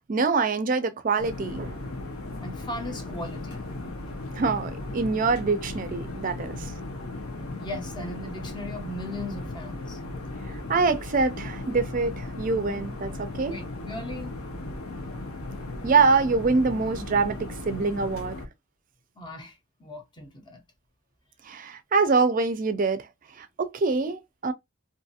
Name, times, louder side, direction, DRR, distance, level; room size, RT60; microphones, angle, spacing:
voice 1, 0.1-1.8 4.4-6.7 10.7-13.6 15.8-18.4 21.4-23.1 23.4-24.5, right 4 dB, 40° right, 0.4 m, -25 dB
sound 1, 1.2-18.5, left 2 dB, 90° left, 0.8 m, -36 dB
voice 2, 2.4-3.7 7.6-10.0 13.5-14.4 19.2-20.6, left 1 dB, 20° left, 0.6 m, -38 dB
2.6 x 2.4 x 2.7 m
head